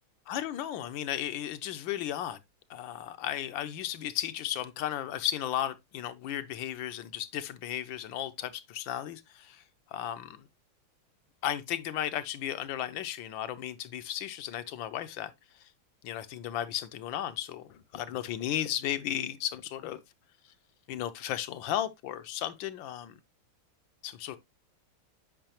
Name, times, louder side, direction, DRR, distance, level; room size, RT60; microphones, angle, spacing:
voice 1, 0.3-2.4 2.7-9.6 9.9-10.4 11.4-15.3 15.6-15.7 16.0-20.0 20.9-23.2 24.0-24.4, left 11 dB, 75° left, 1.3 m, -35 dB
8.8 x 5.5 x 2.9 m
omnidirectional pair, 2.3 m